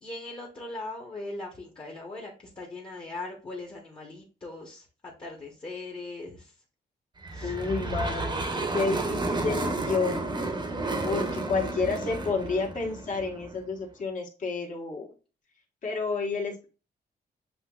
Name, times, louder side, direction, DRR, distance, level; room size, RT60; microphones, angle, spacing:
voice 1, 0.0-4.8 5.2-6.5 7.3-7.5, left 2 dB, 30° left, -1 dB, 1.1 m, -40 dB
sound 1, 7.2-13.6, right 2 dB, 25° right, 0.8 m, -31 dB
voice 2, 7.4-8.4 8.7-10.3 11.0-15.1 15.8-16.7, left 4 dB, 50° left, 0 dB, 1.3 m, -30 dB
7.8 x 2.9 x 2.3 m, 0.34 s
wide cardioid pair, 155°, 17 cm